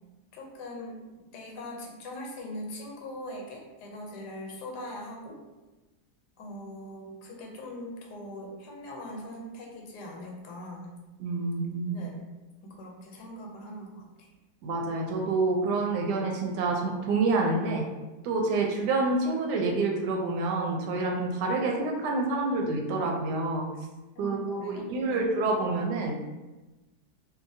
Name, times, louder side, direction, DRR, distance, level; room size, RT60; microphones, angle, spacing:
voice 1, 0.3-1.0 1.3-5.4 6.4-11.0 11.9-12.2 12.7-14.1 24.1-25.2, left 1 dB, 90° left, 0 dB, 1.2 m, -41 dB
voice 2, 11.2-12.0 14.6-17.9 18.2-23.7 24.2-26.2, right 3 dB, 90° right, 1 dB, 1.2 m, -28 dB
2.7 x 2.5 x 2.6 m, 1.1 s
omnidirectional pair, 1.7 m